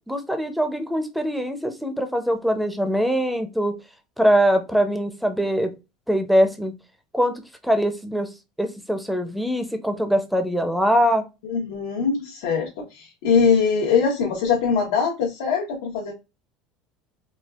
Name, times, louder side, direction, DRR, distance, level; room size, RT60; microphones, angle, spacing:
voice 1, 0.1-3.7 4.2-5.7 6.1-6.7 7.1-8.3 8.6-11.2, equal, ahead, 7 dB, 0.5 m, -22 dB
voice 2, 11.4-16.1, left 6 dB, 85° left, -2 dB, 1.0 m, -22 dB
4.3 x 2.4 x 2.3 m, 0.25 s
cardioid pair, 155°, 0 cm